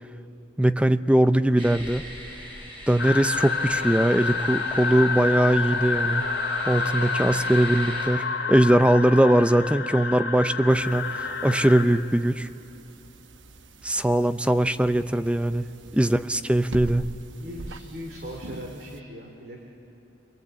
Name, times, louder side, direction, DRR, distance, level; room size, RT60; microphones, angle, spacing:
voice 1, 0.6-2.0 2.9-6.3 6.7-12.5 13.8-15.7 15.9-17.1, right 1 dB, 5° right, 11 dB, 0.5 m, -21 dB
sound 1, 1.6-8.1, equal, 30° right, 6.2 m, -41 dB
sound 2, 3.0-11.8, left 4 dB, 90° left, 2.6 m, -28 dB
sound 3, 10.7-19.0, right 2 dB, 85° right, 1.0 m, -43 dB
voice 2, 17.4-19.6, equal, 55° right, 1 dB, 2.6 m, -40 dB
27.5 x 23.0 x 8.8 m, 2.8 s
head